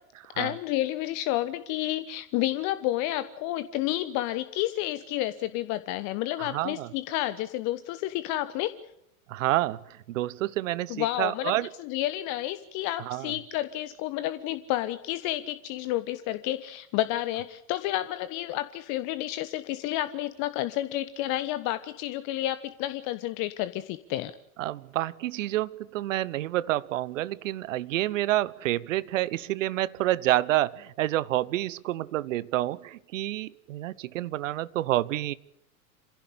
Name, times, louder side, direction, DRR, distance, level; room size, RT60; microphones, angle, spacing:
voice 1, 0.4-8.7 10.9-24.3, left 15 dB, 40° left, 13 dB, 1.1 m, -30 dB
voice 2, 6.4-6.9 9.3-11.7 13.0-13.3 24.6-35.3, right 15 dB, 60° right, 20 dB, 1.1 m, -28 dB
27.0 x 16.5 x 8.5 m, 0.79 s
figure-of-eight pair, 90°, 43 cm